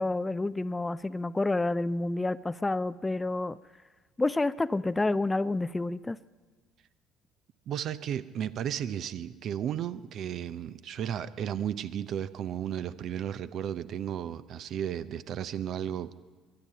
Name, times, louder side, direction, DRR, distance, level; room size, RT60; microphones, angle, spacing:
voice 1, 0.0-3.6 4.2-6.2, left 2 dB, 15° left, 17 dB, 0.4 m, -29 dB
voice 2, 7.7-16.2, right 9 dB, 50° right, 15 dB, 0.5 m, -34 dB
22.0 x 11.0 x 5.5 m, 1.4 s
figure-of-eight pair, 55°, 0 cm